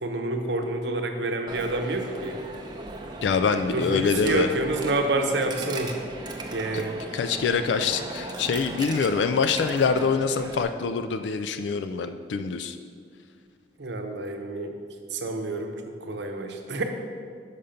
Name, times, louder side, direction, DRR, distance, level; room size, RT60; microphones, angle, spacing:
voice 1, 0.0-2.4 3.7-6.0 6.5-7.0 13.8-14.8 15.1-16.8, right 2 dB, 75° right, 5 dB, 0.7 m, -28 dB
Coin (dropping), 1.5-10.6, right 2 dB, 25° right, 0.6 m, -37 dB
voice 2, 3.2-4.5 6.7-6.8 7.1-12.8, left 5 dB, 80° left, 10 dB, 0.3 m, -25 dB
6.7 x 5.6 x 5.1 m, 2.1 s
head